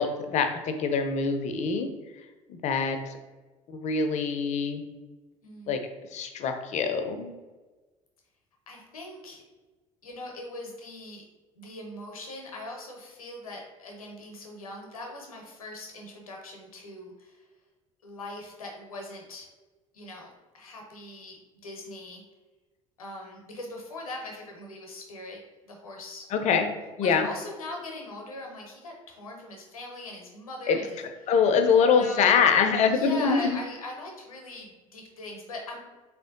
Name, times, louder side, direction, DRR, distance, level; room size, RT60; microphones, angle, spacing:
voice 1, 0.0-1.9 2.5-3.1 3.7-4.8 5.7-5.8 6.1-7.3 26.3-26.7 27.0-27.3 30.7-30.8 31.3-33.6, left 6 dB, 40° left, 7 dB, 0.4 m, -24 dB
voice 2, 5.4-5.8 8.7-9.4 10.0-11.2 11.5-17.5 18.0-19.5 19.9-22.2 23.0-26.6 27.0-31.0 31.9-32.4 32.9-35.8, left 2 dB, 85° left, 1 dB, 0.6 m, -41 dB
3.3 x 2.5 x 2.6 m, 1.2 s
figure-of-eight pair, 60°, 18 cm